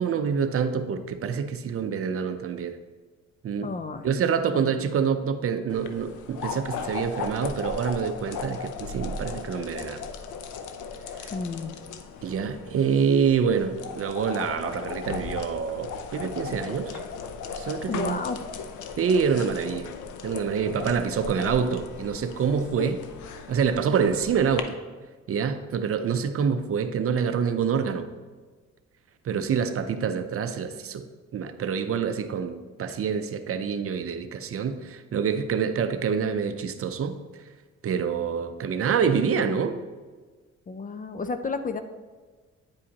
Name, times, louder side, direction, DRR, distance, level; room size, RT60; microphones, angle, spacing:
voice 1, 0.0-2.8 3.4-3.7 4.0-10.0 11.2-11.3 12.2-17.0 17.6-18.2 19.0-19.9 20.2-23.0 23.5-24.8 25.3-28.1 29.2-31.0 31.3-37.2 37.8-39.8, right 6 dB, 50° right, 9 dB, 0.6 m, -26 dB
voice 2, 3.6-4.1 4.5-4.7 11.3-11.8 17.9-18.4 22.8-22.9 40.7-41.8, left 4 dB, 30° left, 9 dB, 0.4 m, -32 dB
sound 1, 5.7-24.6, left 5 dB, 80° left, 0.6 m, -37 dB
9.3 x 4.9 x 2.8 m, 1.4 s
cardioid pair, 90°, 30 cm